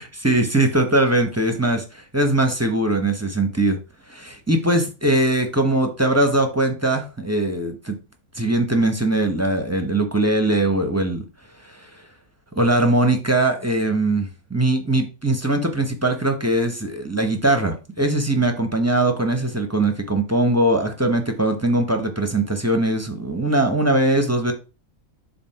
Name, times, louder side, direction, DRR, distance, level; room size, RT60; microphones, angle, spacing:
voice 1, 0.2-3.8 4.1-8.0 8.4-11.2 12.5-24.5, right 1 dB, 15° right, 5 dB, 0.9 m, -21 dB
7.7 x 2.8 x 5.7 m, 0.32 s
omnidirectional pair, 1.4 m